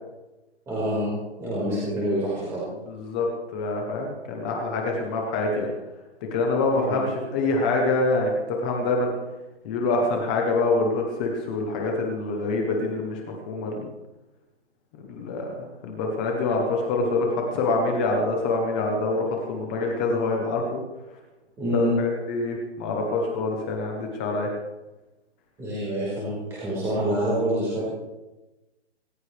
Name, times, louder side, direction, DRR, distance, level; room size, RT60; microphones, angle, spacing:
voice 1, 0.7-1.1 1.4-2.6 6.7-7.0 21.6-21.9 25.6-27.8, right 1 dB, 10° right, -8 dB, 4.6 m, -27 dB
voice 2, 2.9-3.3 3.5-5.7 6.3-9.1 9.6-13.2 13.5-13.9 15.0-20.8 21.7-24.5, left 3 dB, 10° left, 1 dB, 0.8 m, -25 dB
25.5 x 14.5 x 3.3 m, 1.0 s
hypercardioid pair, 170°, 33 cm